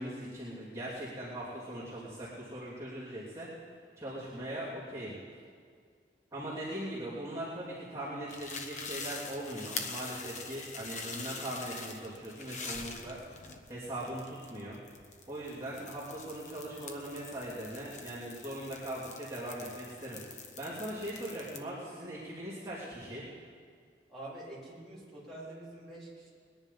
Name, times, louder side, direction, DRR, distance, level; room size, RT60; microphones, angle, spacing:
voice 1, 0.0-3.5 4.0-5.1 6.3-13.2 13.7-14.8 15.3-20.2 20.6-23.2, right 1 dB, 15° right, -10 dB, 3.0 m, -40 dB
sound 1, 8.3-21.6, left 4 dB, 40° left, 0.9 m, -44 dB
voice 2, 24.1-26.3, right 1 dB, ahead, -8 dB, 3.8 m, -46 dB
21.0 x 10.5 x 5.5 m, 2.1 s
head